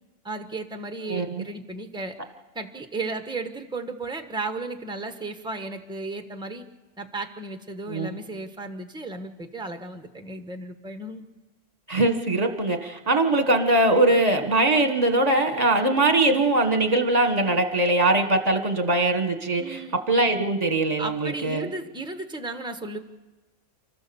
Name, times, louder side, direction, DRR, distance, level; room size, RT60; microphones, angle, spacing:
voice 1, 0.2-2.2 2.5-6.7 7.0-11.2 19.6-19.9 21.0-23.0, right 3 dB, 5° right, 7 dB, 1.2 m, -34 dB
voice 2, 1.1-1.4 7.9-8.2 11.9-21.7, right 2 dB, 30° right, 6 dB, 1.6 m, -22 dB
29.5 x 14.0 x 7.1 m, 1.2 s
omnidirectional pair, 1.3 m